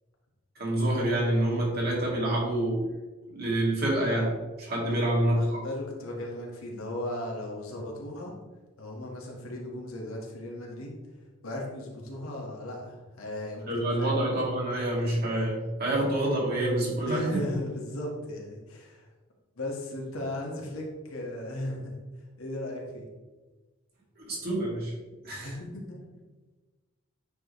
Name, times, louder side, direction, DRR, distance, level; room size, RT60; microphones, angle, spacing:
voice 1, 0.6-2.9 3.3-4.3 4.6-5.6 13.7-17.4 24.2-24.9 25.2-25.5, right 1 dB, 50° right, -4 dB, 2.4 m, -27 dB
voice 2, 5.4-8.3 8.8-10.9 11.4-14.1 17.1-19.1 19.6-22.0 22.4-23.1 25.4-26.1, left 1 dB, 85° left, -1 dB, 1.8 m, -36 dB
9.1 x 5.1 x 3.2 m, 1.2 s
head